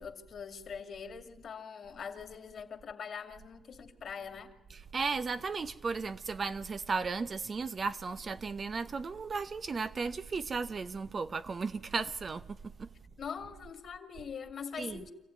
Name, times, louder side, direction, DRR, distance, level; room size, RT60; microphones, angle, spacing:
voice 1, 0.0-4.5 13.2-15.1, left 6 dB, 55° left, 2.3 m, -43 dB
voice 2, 4.7-12.9 14.8-15.0, right 4 dB, 40° right, 0.8 m, -35 dB
26.0 x 15.0 x 9.5 m
cardioid pair, 90°, 0 cm